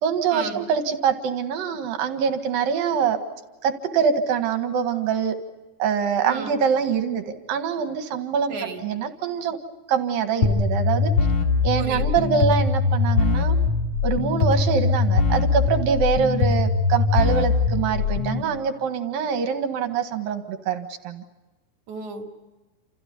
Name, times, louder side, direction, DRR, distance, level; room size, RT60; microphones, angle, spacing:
voice 1, 0.0-3.2 3.6-5.3 5.8-9.6 9.9-11.1 11.6-13.6 14.0-21.2, right 6 dB, 70° right, 7 dB, 3.4 m, -24 dB
voice 2, 6.2-6.6 8.5-8.8 11.8-12.1 21.9-22.4, right 5 dB, 55° right, 3 dB, 3.7 m, -34 dB
sound 1, 10.4-18.4, left 4 dB, 50° left, 4.1 m, -21 dB
29.5 x 29.0 x 5.4 m, 1.2 s
omnidirectional pair, 4.3 m